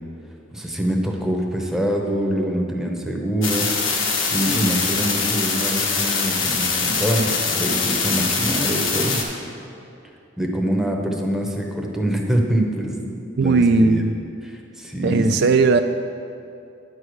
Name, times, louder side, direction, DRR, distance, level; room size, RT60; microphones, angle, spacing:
voice 1, 0.5-9.2 10.4-14.0 14.4-15.4, right 1 dB, 5° right, 0 dB, 0.8 m, -25 dB
sound 1, 3.4-9.2, left 4 dB, 90° left, 1.3 m, -23 dB
voice 2, 13.4-14.1 15.0-15.8, right 4 dB, 55° right, 8 dB, 0.3 m, -17 dB
9.7 x 4.8 x 6.4 m, 2.6 s
head